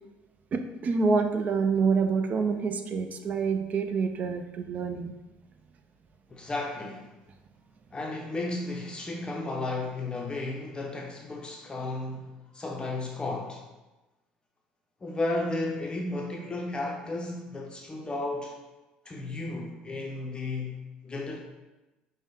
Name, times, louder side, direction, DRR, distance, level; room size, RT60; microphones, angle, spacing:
voice 1, 0.5-5.1, right 5 dB, 40° right, 7 dB, 0.4 m, -27 dB
voice 2, 6.3-7.1 7.9-13.6 15.0-18.5 19.0-21.4, left 2 dB, 25° left, 0 dB, 0.6 m, -34 dB
5.2 x 2.1 x 3.4 m, 1.1 s
hypercardioid pair, 75°, 4 cm